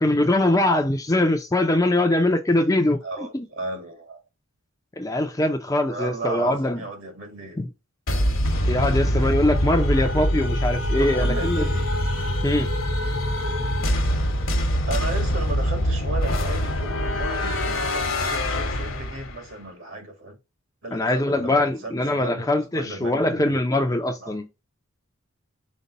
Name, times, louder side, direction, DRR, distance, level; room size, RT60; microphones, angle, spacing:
voice 1, 0.0-3.0 3.3-3.5 5.0-6.8 7.6-7.7 8.7-11.7 12.4-12.7 20.9-24.5, left 1 dB, 15° left, 0.5 m, -22 dB
voice 2, 3.0-4.2 5.9-7.7 11.0-11.8 14.9-20.4 20.8-22.5 22.7-23.6 24.2-24.4, right 2 dB, 60° right, 1.6 m, -35 dB
sound 1, 8.1-19.5, equal, 60° left, 1.1 m, -24 dB
5.3 x 2.2 x 4.1 m
head